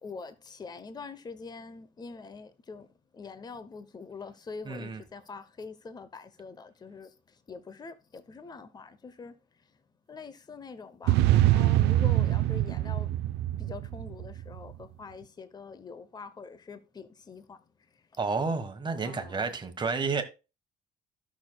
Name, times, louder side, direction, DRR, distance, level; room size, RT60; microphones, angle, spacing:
voice 1, 0.0-2.9 3.1-7.1 7.5-9.3 10.1-13.1 13.6-17.6 19.0-19.6, left 4 dB, 25° left, 0.8 m, -44 dB
voice 2, 4.6-5.0 18.2-20.2, right 4 dB, 25° right, 1.4 m, -30 dB
sound 1, 11.1-14.6, right 14 dB, 85° right, 0.5 m, -24 dB
14.5 x 6.3 x 2.3 m
cardioid pair, 110°, 17 cm